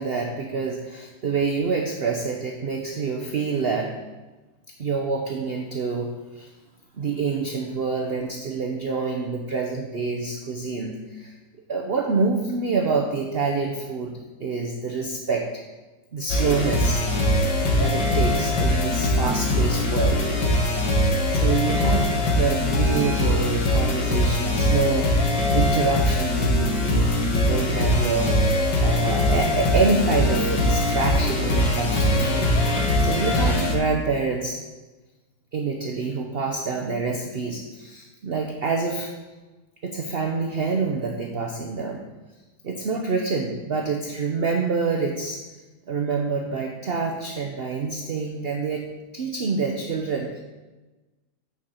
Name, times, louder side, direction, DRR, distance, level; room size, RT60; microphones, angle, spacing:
voice 1, 0.0-3.9 4.8-6.5 7.0-11.3 11.7-14.1 14.4-15.6 16.1-17.0 17.8-20.3 20.5-20.6 21.3-22.1 22.3-34.6 35.5-39.1 39.8-42.0 42.6-45.4 45.9-48.8 49.1-50.3, right 4 dB, 45° right, 2 dB, 0.8 m, -27 dB
sound 1, 16.3-33.8, left 1 dB, 85° left, 2.0 m, -22 dB
9.3 x 5.4 x 5.7 m, 1.2 s
omnidirectional pair, 1.8 m